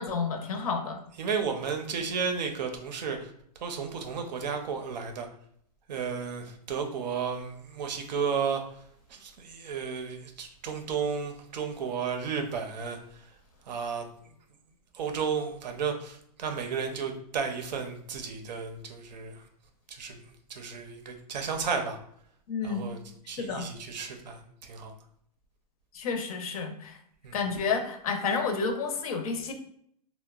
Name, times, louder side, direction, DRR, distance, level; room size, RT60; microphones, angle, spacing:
voice 1, 0.0-1.0 22.5-22.8 23.4-23.7 25.9-27.0 27.3-29.5, left 5 dB, 60° left, 5 dB, 0.5 m, -30 dB
voice 2, 1.2-3.3 3.6-5.3 5.9-8.8 9.1-13.3 13.7-14.1 14.9-19.4 19.9-20.2 20.5-22.0 22.6-23.0 23.3-24.9 27.2-27.4, right 6 dB, 85° right, 5 dB, 0.5 m, -33 dB
2.7 x 2.1 x 2.3 m, 0.67 s
hypercardioid pair, 160°, 21 cm